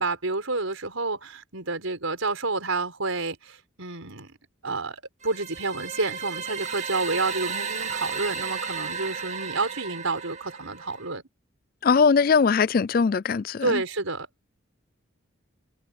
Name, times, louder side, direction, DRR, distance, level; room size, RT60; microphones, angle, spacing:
voice 1, 0.0-4.3 4.6-11.2 13.6-14.5, right 3 dB, 85° right, 5.0 m, -29 dB
sound 1, 5.2-11.2, right 6 dB, 35° right, 2.1 m, -34 dB
voice 2, 11.8-13.8, left 5 dB, 45° left, 0.3 m, -21 dB
head